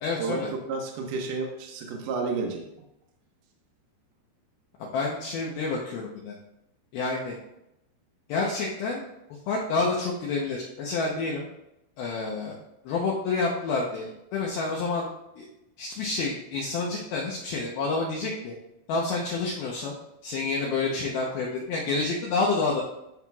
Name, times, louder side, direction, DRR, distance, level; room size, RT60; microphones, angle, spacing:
voice 1, 0.0-0.5 4.8-6.3 6.9-7.4 8.3-9.0 9.5-11.5 12.0-12.6 12.8-15.1 15.4-15.5 15.8-18.5 18.9-19.9 20.2-22.8, left 3 dB, 75° left, -3 dB, 2.3 m, -28 dB
voice 2, 0.7-2.6, right 4 dB, 65° right, 1 dB, 2.2 m, -31 dB
13.5 x 5.7 x 2.4 m, 0.85 s
omnidirectional pair, 5.4 m